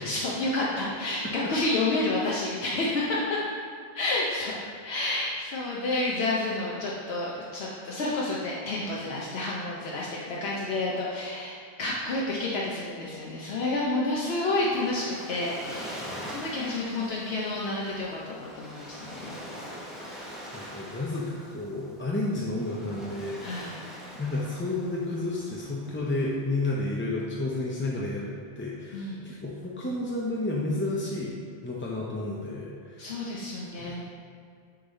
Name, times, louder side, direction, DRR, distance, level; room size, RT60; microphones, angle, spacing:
voice 1, 0.0-3.4 3.9-19.4 23.4-23.8 28.9-29.3 33.0-34.0, left 2 dB, 75° left, -5 dB, 1.0 m, -30 dB
Waves surf, 14.2-26.6, equal, ahead, 0.9 m, -43 dB
voice 2, 20.1-23.8 24.2-28.3 28.6-31.3 31.6-33.2 33.8-34.0, left 2 dB, 15° left, -5 dB, 0.4 m, -31 dB
6.7 x 4.0 x 4.0 m, 2.2 s
omnidirectional pair, 1.1 m